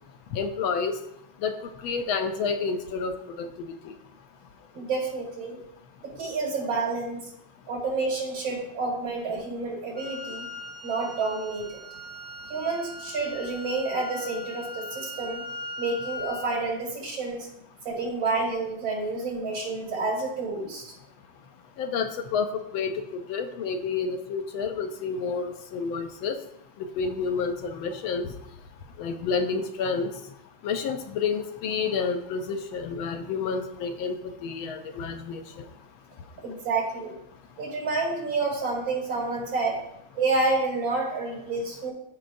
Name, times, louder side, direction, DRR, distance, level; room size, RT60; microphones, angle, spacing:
voice 1, 0.3-0.9 1.4-1.5 1.8-3.1 3.4-3.7 21.8-22.9 23.3-26.4 27.0-28.3 29.0-30.1 30.6-34.2 34.4-35.4, left 5 dB, 85° left, 7 dB, 1.5 m, -29 dB
voice 2, 4.7-5.6 6.0-7.3 7.7-10.5 10.8-11.8 12.5-15.4 15.8-17.5 17.8-20.9 36.4-37.2 37.6-39.8 40.1-41.9, right 3 dB, 70° right, -2 dB, 3.0 m, -29 dB
Wind instrument woodwind instrument, 9.9-16.6, left 2 dB, 10° left, 1.2 m, -39 dB
13.5 x 4.5 x 2.6 m, 0.80 s
omnidirectional pair, 2.2 m